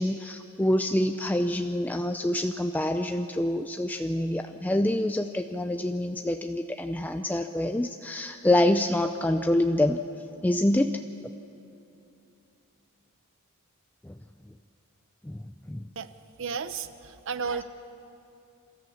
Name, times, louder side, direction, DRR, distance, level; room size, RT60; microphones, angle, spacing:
voice 1, 0.0-10.0 10.4-11.0 14.1-14.2 15.2-15.4 15.7-15.8, left 1 dB, 10° left, 6 dB, 0.5 m, -26 dB
voice 2, 16.4-17.6, right 5 dB, 65° right, 11 dB, 0.8 m, -33 dB
28.5 x 13.5 x 7.2 m, 2.8 s
head